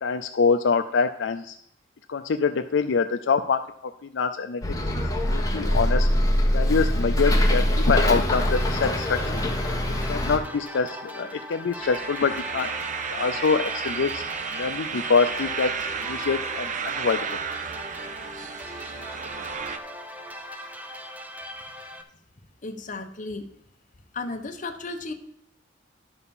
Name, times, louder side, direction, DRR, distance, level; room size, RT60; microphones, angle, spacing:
voice 1, 0.0-1.6 2.1-3.6 4.0-4.6 5.3-6.1 6.5-9.4 10.1-12.7 13.1-14.2 14.5-17.2, left 5 dB, 75° left, 7 dB, 0.5 m, -25 dB
Bus, 4.6-10.4, equal, 20° left, 1.2 m, -23 dB
sound 1, 8.3-22.0, equal, 10° right, 0.7 m, -39 dB
sound 2, 11.8-19.8, right 6 dB, 45° right, 0.6 m, -33 dB
voice 2, 22.6-23.4 24.1-25.1, left 3 dB, 45° left, 6 dB, 1.0 m, -34 dB
11.0 x 4.2 x 7.0 m, 0.72 s
head